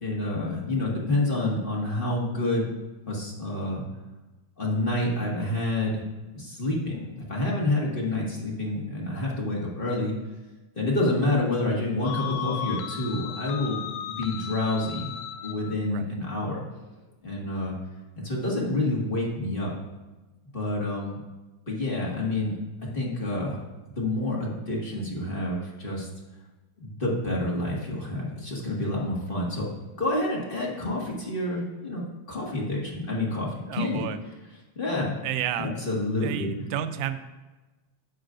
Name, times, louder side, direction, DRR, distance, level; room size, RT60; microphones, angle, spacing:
voice 1, 0.0-2.7 3.1-3.8 4.6-6.0 6.3-10.1 10.7-15.1 15.4-16.6 17.2-17.8 18.2-19.7 20.5-21.2 21.7-22.5 22.9-23.6 24.0-26.1 26.8-29.7 30.0-34.0 34.7-35.1 35.6-36.5, left 2 dB, 25° left, -4 dB, 1.4 m, -28 dB
sound 1, 12.0-15.8, left 10 dB, 75° left, 1.4 m, -35 dB
voice 2, 33.7-34.2 35.2-35.7 36.2-37.2, right 10 dB, 80° right, 9 dB, 1.4 m, -31 dB
11.0 x 8.3 x 2.6 m, 1.1 s
omnidirectional pair, 3.3 m